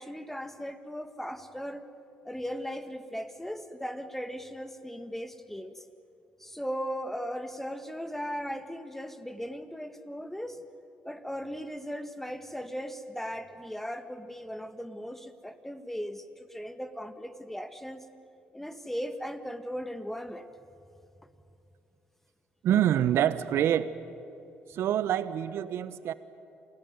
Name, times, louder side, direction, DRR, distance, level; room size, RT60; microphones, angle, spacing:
voice 1, 0.0-1.8 2.2-5.8 6.4-10.6 11.0-18.1 18.5-20.5, equal, 5° left, 9 dB, 2.0 m, -37 dB
voice 2, 22.6-23.9 24.7-26.1, right 10 dB, 65° right, 15 dB, 1.0 m, -26 dB
27.0 x 17.5 x 9.6 m, 2.8 s
hypercardioid pair, 50°, 5 cm